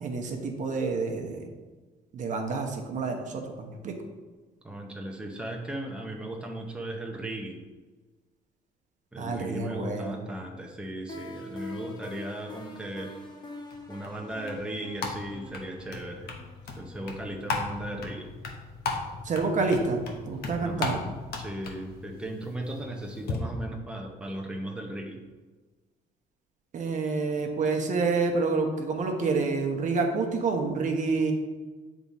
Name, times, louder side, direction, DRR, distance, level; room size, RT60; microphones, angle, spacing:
voice 1, 0.0-1.4 2.1-4.0 9.2-10.2 19.2-21.0 26.7-31.3, right 4 dB, 45° right, 3 dB, 0.9 m, -28 dB
voice 2, 4.6-7.6 9.1-13.1 13.9-16.3 16.8-18.3 20.6-25.2, right 1 dB, 5° right, 1 dB, 0.7 m, -37 dB
sound 1, 11.1-17.9, left 2 dB, 25° left, 1.0 m, -44 dB
sound 2, 13.7-23.4, left 4 dB, 70° left, 1.0 m, -37 dB
6.8 x 3.6 x 4.2 m, 1.3 s
cardioid pair, 110°, 17 cm